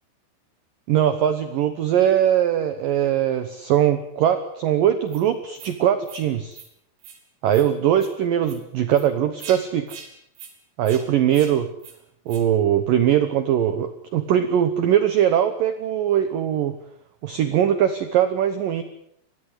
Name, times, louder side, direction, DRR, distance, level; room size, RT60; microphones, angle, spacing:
voice 1, 0.9-6.6 7.4-9.9 10.8-11.7 12.3-16.8 17.2-18.8, right 10 dB, 85° right, 10 dB, 1.9 m, -21 dB
sound 1, 5.1-5.2 5.6-5.7 6.0-6.2 6.5-6.7 7.0-7.2 7.5-7.7 8.0-8.1 8.4-8.6 8.9-9.1 9.4-9.6 9.9-10.1 10.4-10.5 10.8-11.0 11.3-11.5 11.8-12.0 12.3-12.4, right 7 dB, 65° right, 5.6 m, -42 dB
23.0 x 17.0 x 8.2 m, 0.71 s
omnidirectional pair, 5.7 m